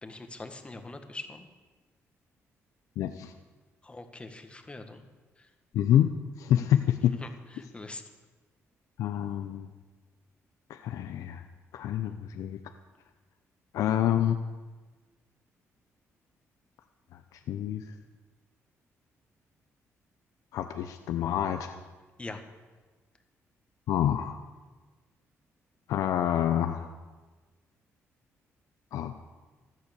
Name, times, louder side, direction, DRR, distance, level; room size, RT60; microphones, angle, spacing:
voice 1, 0.0-1.5 3.8-5.0 5.4-5.5 7.2-7.3 7.6-8.0 22.2-22.4, left 2 dB, 20° left, 6 dB, 1.8 m, -42 dB
voice 2, 3.0-3.3 5.7-6.1 6.4-7.1 9.0-9.7 10.7-11.4 11.7-12.6 13.7-14.4 17.3-17.8 20.5-21.7 23.9-24.4 25.9-26.9 28.9-29.2, left 11 dB, 85° left, 8 dB, 0.7 m, -27 dB
14.5 x 12.0 x 6.9 m, 1.3 s
cardioid pair, 95°, 6 cm